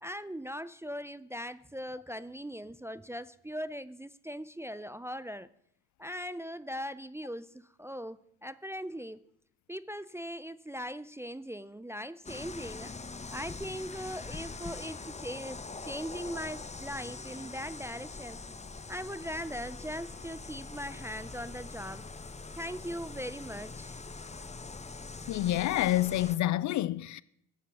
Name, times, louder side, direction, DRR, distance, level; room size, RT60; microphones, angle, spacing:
voice 1, 0.0-5.5 6.0-9.2 9.7-12.9 13.3-18.4 18.9-22.1 22.5-24.0, equal, 5° right, 0.5 m, -40 dB
sound 1, 12.2-26.4, left 3 dB, 15° left, 1.0 m, -43 dB
voice 2, 25.3-27.2, left 14 dB, 45° left, 0.5 m, -28 dB
16.0 x 9.0 x 6.1 m
figure-of-eight pair, 50°, 43 cm